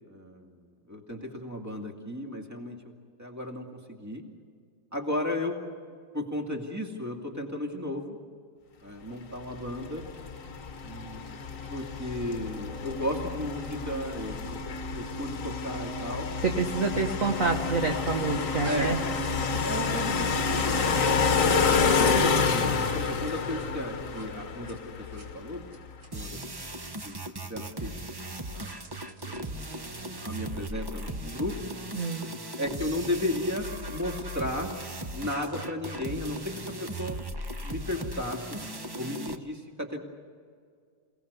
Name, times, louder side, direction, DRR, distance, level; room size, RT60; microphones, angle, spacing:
voice 1, 0.1-0.6 0.9-2.9 3.2-4.2 4.9-5.6 6.1-8.2 8.8-10.1 10.8-11.4 11.7-14.6 14.9-16.3 18.7-19.0 19.3-21.3 21.7-25.6 26.1-26.4 27.0-27.2 27.4-28.2 28.5-29.4 30.2-31.6 32.6-34.8 35.1-37.2 37.6-38.5 39.0-40.0, left 1 dB, 10° right, 2 dB, 2.2 m, -34 dB
sound 1, 9.5-25.7, left 5 dB, 45° left, 1.6 m, -29 dB
voice 2, 16.4-19.0 32.0-32.3, right 4 dB, 45° right, 3 dB, 1.4 m, -27 dB
sound 2, 18.6-20.1 20.3-23.6 24.1-24.3 24.5-24.7 25.0-25.3 25.7-26.1 26.7-26.8 27.1-27.2 28.0-29.9, right 2 dB, 85° right, 4.2 m, -49 dB
sound 3, 26.1-39.4, right 1 dB, 30° right, 0.4 m, -38 dB
28.5 x 18.0 x 6.9 m, 2.1 s
omnidirectional pair, 2.2 m